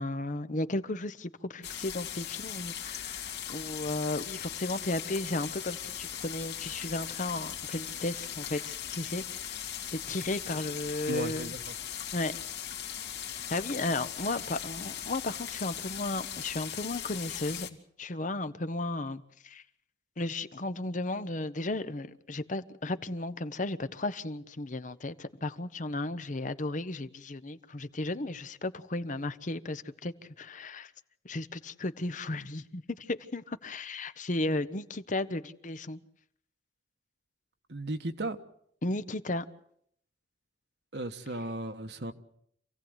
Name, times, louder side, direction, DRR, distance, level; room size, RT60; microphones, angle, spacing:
voice 1, 0.0-11.6 12.1-12.3 13.5-17.7 18.0-19.6 20.2-30.9 31.2-36.0 38.8-39.4, left 2 dB, 45° left, 1.0 m, -34 dB
sound 1, 1.6-17.7, left 10 dB, 70° left, 2.5 m, -39 dB
voice 2, 11.1-11.6 37.7-38.4 40.9-42.1, right 2 dB, 70° right, 1.5 m, -35 dB
27.5 x 16.5 x 8.1 m
head